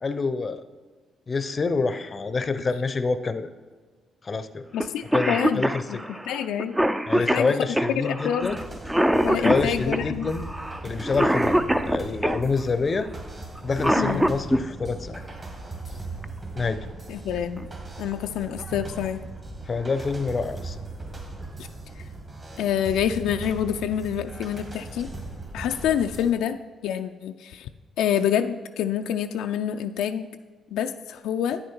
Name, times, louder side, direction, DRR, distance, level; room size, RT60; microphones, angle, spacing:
voice 1, 0.0-0.6 1.3-3.5 4.2-4.6 5.1-6.1 7.1-8.6 9.4-10.5 10.8-13.1 13.6-15.2 16.5-16.8 19.7-20.8, left 4 dB, 35° left, 12 dB, 0.6 m, -27 dB
voice 2, 4.7-6.7 7.2-7.5 8.0-8.6 9.2-10.3 14.0-14.3 17.1-17.6 18.0-19.2 21.6-21.7 22.6-25.1 25.5-26.6 26.8-27.7 28.0-30.3 30.7-31.6, left 9 dB, 85° left, 7 dB, 0.4 m, -27 dB
Cough, 4.8-4.9 5.1-12.4 13.6-14.6 16.2-16.3 17.4-17.6 18.1-18.2 18.6-19.1, right 1 dB, 10° right, 0.4 m, -24 dB
sound 1, 8.4-26.3, right 2 dB, 30° right, 1.8 m, -38 dB
9.3 x 6.4 x 4.4 m, 1.5 s
cardioid pair, 90°, 0 cm